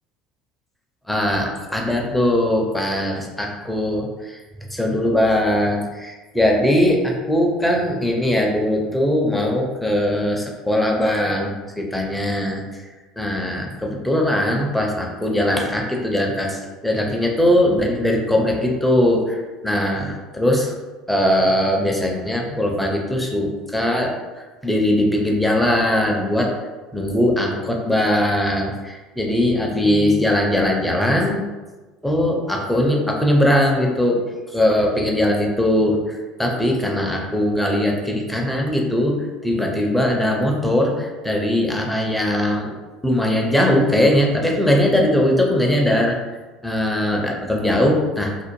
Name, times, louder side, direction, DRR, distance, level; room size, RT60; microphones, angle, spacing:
voice 1, 1.1-4.4 4.7-12.6 13.2-20.7 21.1-24.1 24.6-26.5 26.9-31.4 32.0-34.2 34.5-39.2 39.4-42.7 43.0-46.1 46.6-48.3, left 1 dB, 5° left, 0 dB, 0.5 m, -20 dB
2.5 x 2.0 x 3.1 m, 1.3 s
figure-of-eight pair, 65°, 3 cm